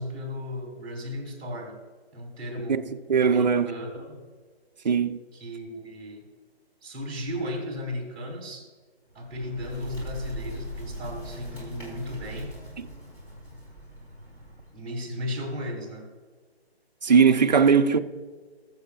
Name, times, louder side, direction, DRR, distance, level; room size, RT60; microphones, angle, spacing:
voice 1, 0.0-1.8 2.1-2.8 3.2-4.3 5.3-6.3 6.8-8.7 9.1-12.6 14.7-16.1, left 1 dB, 15° right, 2.5 m, -35 dB
voice 2, 3.1-3.7 4.8-5.2 12.8-12.9 17.0-18.0, right 6 dB, 45° right, 0.5 m, -19 dB
Bird, 9.1-14.8, equal, 15° left, 2.8 m, -40 dB
19.0 x 7.6 x 2.4 m
hypercardioid pair, 165°, 32 cm